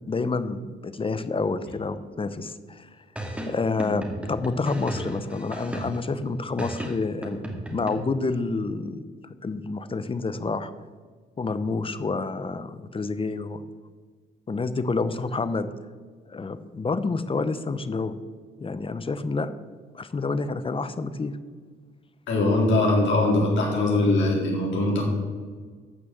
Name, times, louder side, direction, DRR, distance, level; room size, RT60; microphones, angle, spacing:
voice 1, 0.1-2.9 3.5-7.4 7.7-9.0 9.2-10.7 11.4-13.6 14.5-15.7 16.3-18.1 18.6-19.5 19.9-21.3, left 3 dB, 25° left, 13 dB, 0.8 m, -28 dB
sound 1, 3.2-6.2 6.6-7.9, right 1 dB, 5° right, 2.3 m, -35 dB
voice 2, 22.3-25.0, left 2 dB, 70° left, -3 dB, 4.1 m, -21 dB
12.0 x 6.1 x 7.9 m, 1.5 s
cardioid pair, 90°, 20 cm